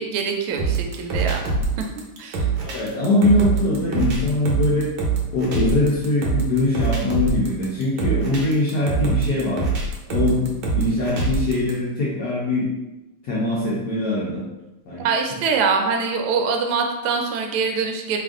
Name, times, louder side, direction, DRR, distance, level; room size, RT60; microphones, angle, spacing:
voice 1, 0.0-1.4 1.8-1.9 2.2-2.5 15.0-18.2, right 5 dB, 85° right, 3 dB, 1.5 m, -24 dB
sound 1, 0.6-11.7, right 4 dB, 70° right, 1.4 m, -24 dB
voice 2, 2.6-4.9 5.3-9.6 10.1-12.7 13.2-14.4 14.9-15.1, left 2 dB, 65° left, -7 dB, 1.0 m, -22 dB
3.5 x 2.4 x 3.6 m, 1.0 s
omnidirectional pair, 2.4 m